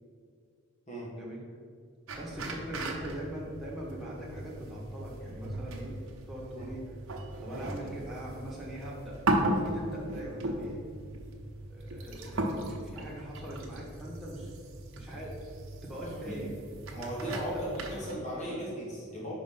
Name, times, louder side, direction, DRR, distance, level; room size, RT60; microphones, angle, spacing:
sound 1, 2.1-18.1, right 1 dB, 75° right, 1.0 m, -37 dB
voice 1, 2.2-5.9 6.3-6.8 7.4-9.2 9.5-10.8 11.7-14.5 14.9-15.3 15.8-16.5 17.2-17.6 18.0-18.6, equal, ahead, -6 dB, 1.5 m, -41 dB
voice 2, 16.0-16.4 16.9-19.3, equal, 35° left, -6 dB, 1.7 m, -37 dB
5.2 x 5.0 x 5.6 m, 2.2 s
head